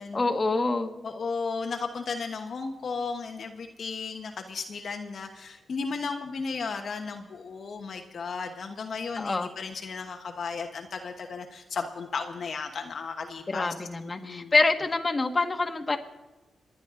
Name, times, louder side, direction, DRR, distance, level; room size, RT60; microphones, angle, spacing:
voice 1, 0.0-0.9 9.2-9.5 13.5-16.0, left 3 dB, 35° left, 4 dB, 1.6 m, -26 dB
voice 2, 1.0-13.7 14.2-14.5, left 4 dB, 65° left, 3 dB, 1.2 m, -34 dB
29.5 x 10.5 x 3.8 m, 1.1 s
cardioid pair, 80°, 0 cm